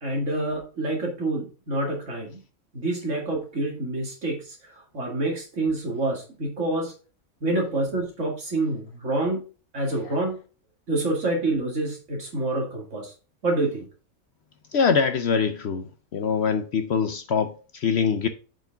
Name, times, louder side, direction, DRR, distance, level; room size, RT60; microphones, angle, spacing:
voice 1, 0.0-2.4 2.7-6.9 7.4-9.4 9.7-10.4 10.9-13.1 13.4-13.9, right 2 dB, 60° right, 2.5 m, -27 dB
voice 2, 14.7-15.8 16.1-18.3, left 6 dB, 60° left, 0.8 m, -23 dB
7.5 x 5.1 x 3.5 m
omnidirectional pair, 1.5 m